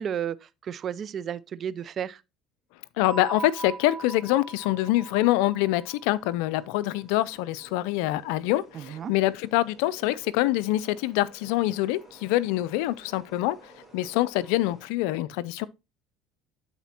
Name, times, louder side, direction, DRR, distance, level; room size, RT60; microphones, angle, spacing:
voice 1, 0.0-2.2 8.7-9.1, right 8 dB, 45° right, 0.4 m, -33 dB
voice 2, 3.0-15.7, left 16 dB, 75° left, 0.4 m, -25 dB
sound 1, 3.0-7.7, right 4 dB, 15° right, 1.7 m, -41 dB
sound 2, 3.6-14.9, right 2 dB, 10° left, 5.2 m, -55 dB
12.5 x 4.1 x 2.8 m
supercardioid pair, 90°, 0 cm